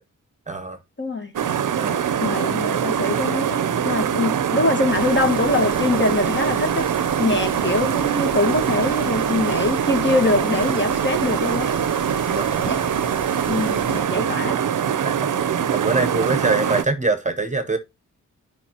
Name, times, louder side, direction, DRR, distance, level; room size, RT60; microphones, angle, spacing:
voice 1, 0.5-0.8 1.8-2.1 12.3-12.7 13.9-14.1 15.0-15.3 15.7-17.8, right 3 dB, 25° right, 0.8 m, -24 dB
voice 2, 1.0-1.3 2.2-6.9 7.2-11.7 12.7-12.8 13.4-14.6, left 2 dB, 35° left, 1.5 m, -23 dB
sound 1, 1.4-16.8, right 8 dB, 80° right, 0.6 m, -23 dB
sound 2, 4.9-14.0, equal, 15° left, 1.2 m, -38 dB
11.5 x 5.1 x 2.8 m
wide cardioid pair, 140°, 31 cm